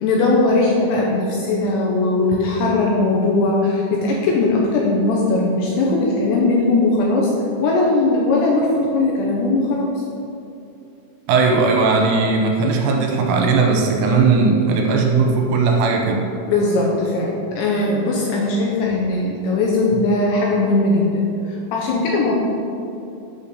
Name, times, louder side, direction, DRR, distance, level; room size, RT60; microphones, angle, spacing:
voice 1, 0.0-7.3 7.6-9.9 16.5-21.3 21.7-22.3, left 2 dB, 80° left, -2 dB, 2.7 m, -19 dB
voice 2, 11.3-16.3, right 4 dB, 80° right, 1 dB, 3.1 m, -17 dB
8.8 x 4.2 x 6.9 m, 2.7 s
omnidirectional pair, 5.8 m